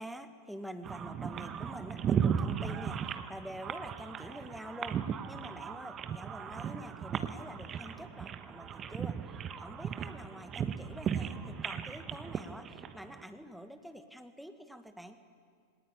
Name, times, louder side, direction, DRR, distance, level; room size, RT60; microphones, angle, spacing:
voice 1, 0.0-15.2, equal, ahead, 9 dB, 1.6 m, -47 dB
sound 1, 0.8-13.2, right 8 dB, 25° right, 1.3 m, -36 dB
24.0 x 18.5 x 9.9 m, 2.1 s
figure-of-eight pair, 90°, 0 cm